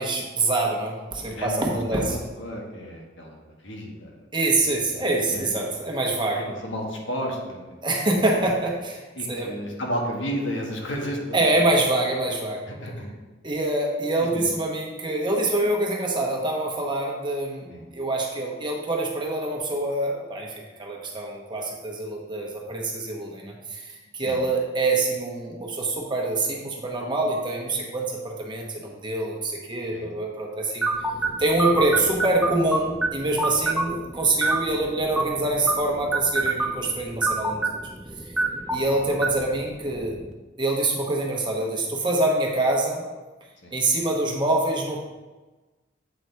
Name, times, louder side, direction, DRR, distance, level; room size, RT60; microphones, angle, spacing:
voice 1, 0.0-2.2 4.3-6.4 7.8-9.0 9.3-9.5 11.3-12.6 13.4-30.9 31.4-37.6 38.7-40.2 40.6-43.0 43.7-45.0, right 2 dB, 25° right, -1 dB, 1.1 m, -25 dB
voice 2, 1.3-4.1 4.9-5.6 6.4-7.8 8.1-8.2 9.1-11.5 12.7-13.1 14.2-14.5 17.7-17.8 24.2-24.4 29.9-30.1 31.2-31.4 34.1-34.2 43.6-43.8, equal, 85° left, 0 dB, 1.5 m, -33 dB
sound 1, 30.8-40.3, right 3 dB, 5° right, 0.5 m, -28 dB
7.8 x 4.1 x 4.5 m, 1.2 s
head